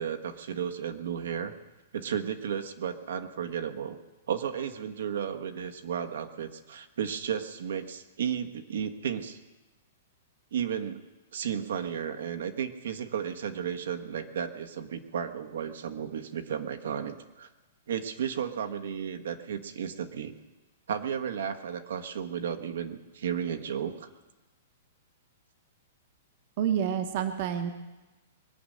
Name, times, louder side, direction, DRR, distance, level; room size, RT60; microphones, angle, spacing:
voice 1, 0.0-1.5 1.9-4.0 4.3-9.4 10.5-11.0 11.3-17.5 17.9-20.3 20.9-24.1, right 8 dB, 75° right, 7 dB, 1.4 m, -33 dB
voice 2, 26.6-27.7, right 9 dB, 40° right, 7 dB, 1.0 m, -28 dB
22.0 x 8.9 x 6.6 m, 1.1 s
hypercardioid pair, 170°, 0 cm